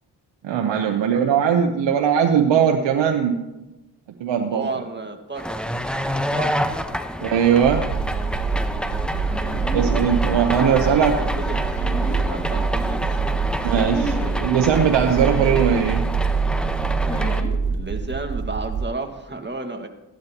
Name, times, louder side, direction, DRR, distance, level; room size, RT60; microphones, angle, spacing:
voice 1, 0.4-3.4 4.2-4.7 7.2-7.9 9.7-11.1 13.6-16.1, right 8 dB, 85° right, 3 dB, 0.9 m, -19 dB
voice 2, 4.4-5.6 6.3-6.5 10.5-11.6 12.1-13.0 17.7-19.9, right 3 dB, 25° right, 5 dB, 1.8 m, -32 dB
sound 1, 5.4-17.4, equal, ahead, 1.0 m, -28 dB
sound 2, 7.6-18.9, right 5 dB, 55° right, 0.7 m, -25 dB
sound 3, 9.3-10.0 11.7-12.2 13.9-14.5 15.1-15.6 17.1-17.5 17.8-18.1, left 1 dB, 20° left, 4.6 m, -31 dB
16.5 x 11.5 x 3.0 m, 1.0 s
supercardioid pair, 45°, 43 cm